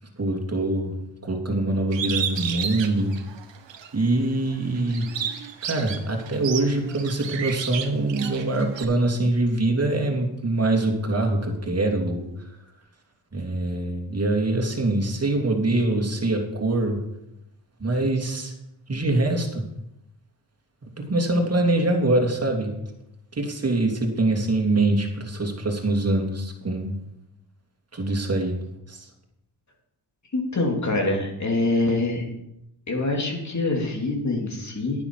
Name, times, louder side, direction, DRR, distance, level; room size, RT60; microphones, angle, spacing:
voice 1, 0.2-1.0 1.2-3.2 3.9-5.1 5.6-12.5 13.3-17.0 17.8-18.5 18.9-19.7 21.0-22.8 23.3-27.0 27.9-28.6 28.9-29.1, right 2 dB, 30° right, 2 dB, 2.8 m, -24 dB
Bird, 1.9-3.9 4.3-8.8, right 8 dB, 70° right, 1.3 m, -32 dB
voice 2, 30.3-32.2 32.9-35.0, left 2 dB, 35° left, 1 dB, 3.0 m, -25 dB
10.0 x 9.8 x 4.8 m, 0.83 s
cardioid pair, 70°, 46 cm